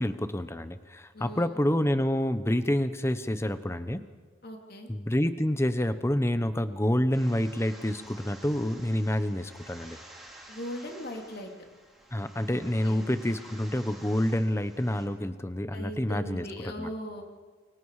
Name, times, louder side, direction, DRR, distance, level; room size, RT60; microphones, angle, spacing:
voice 1, 0.0-4.1 4.9-10.0 12.1-16.9, left 1 dB, 15° left, 11 dB, 1.0 m, -28 dB
voice 2, 1.1-1.7 4.4-4.9 10.5-11.5 12.5-13.0 15.7-17.2, left 1 dB, 60° left, 3 dB, 2.9 m, -39 dB
sound 1, 7.1-15.1, right 1 dB, ahead, 5.2 m, -51 dB
29.0 x 23.5 x 4.9 m, 1.4 s
head